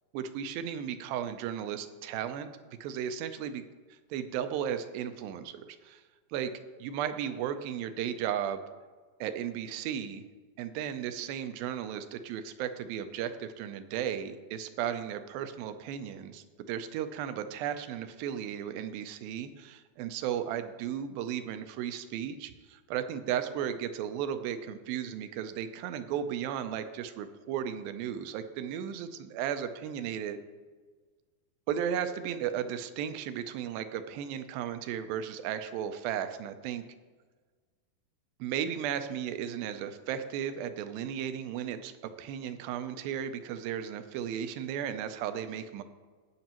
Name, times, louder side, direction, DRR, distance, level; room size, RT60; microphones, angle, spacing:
voice 1, 0.1-2.5 2.8-6.0 6.3-6.5 6.8-8.6 9.2-10.2 10.6-30.4 31.7-36.8 38.4-41.9 42.2-45.8, right 9 dB, 80° right, 9 dB, 2.4 m, -35 dB
18.5 x 6.4 x 3.0 m, 1.4 s
omnidirectional pair, 4.2 m